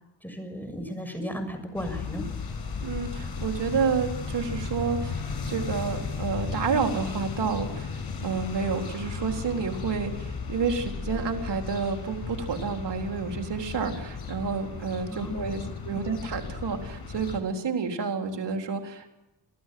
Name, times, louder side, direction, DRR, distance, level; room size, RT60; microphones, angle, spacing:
voice 1, 0.2-2.3 15.1-16.0, equal, 5° left, 6 dB, 6.7 m, -35 dB
sound 1, 1.7-17.4, left 5 dB, 60° left, 6.5 m, -35 dB
voice 2, 2.8-5.2 5.5-19.2, right 5 dB, 80° right, 3 dB, 3.8 m, -30 dB
26.0 x 15.5 x 7.7 m, 0.96 s
cardioid pair, 85°, 42 cm